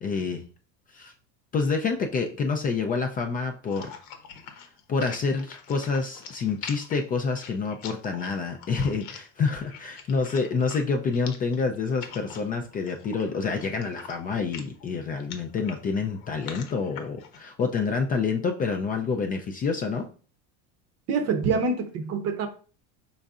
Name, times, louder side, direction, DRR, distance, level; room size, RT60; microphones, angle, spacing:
voice 1, 0.0-0.4 0.9-1.1 1.5-4.0 4.5-20.1, left 4 dB, 25° left, 4 dB, 0.3 m, -28 dB
sound 1, 3.6-17.4, left 7 dB, 75° left, 0.9 m, -44 dB
voice 2, 21.1-22.5, right 4 dB, 40° right, 8 dB, 0.7 m, -25 dB
5.3 x 3.8 x 2.4 m, 0.38 s
supercardioid pair, 135°, 38 cm